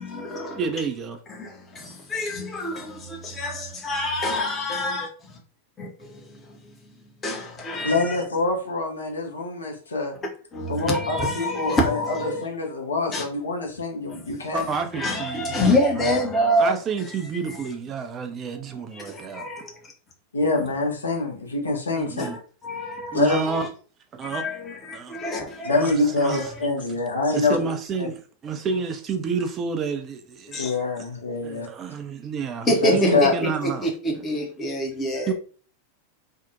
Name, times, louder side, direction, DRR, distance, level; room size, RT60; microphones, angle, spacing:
voice 1, 0.0-0.6 1.3-5.1 5.8-6.9 7.2-8.2 10.5-12.4 13.1-13.2 14.1-14.2 14.9-16.7 17.4-17.6 18.9-19.8 22.2-22.4 22.6-23.7 24.3-25.7 26.3-26.7 30.5-30.7 32.7-35.3, left 1 dB, 20° left, 0.6 m, -27 dB
voice 2, 0.6-1.2 14.5-16.1 16.6-19.4 22.0-22.4 23.1-23.7 24.2-24.4 24.9-25.2 25.8-26.4 27.3-30.7 31.0-31.1 31.4-33.9 34.2-34.3 35.3-35.4, right 5 dB, 25° right, 0.3 m, -29 dB
voice 3, 7.8-10.1 10.7-14.6 20.3-22.2 23.1-23.4 25.6-27.6 28.0-28.1 30.6-31.7 32.8-33.3, left 3 dB, 75° left, 0.6 m, -25 dB
2.6 x 2.0 x 2.6 m
figure-of-eight pair, 90°, 0 cm